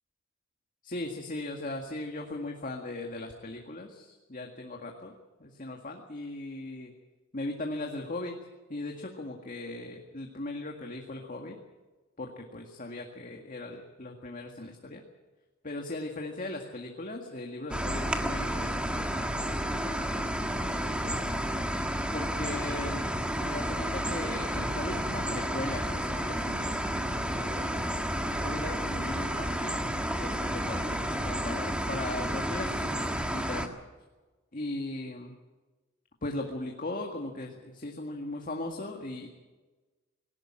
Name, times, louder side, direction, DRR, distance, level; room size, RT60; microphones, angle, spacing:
voice 1, 0.8-5.1 5.4-6.9 7.3-8.3 8.7-11.6 12.2-15.0 15.6-20.1 20.9-21.6 22.1-23.1 23.4-26.8 27.3-29.8 30.2-33.7 34.5-35.4 36.2-39.3, left 2 dB, 40° left, 2 dB, 2.0 m, -38 dB
sound 1, 17.7-33.7, equal, 5° right, 1.6 m, -31 dB
19.5 x 17.5 x 8.9 m, 1.2 s
head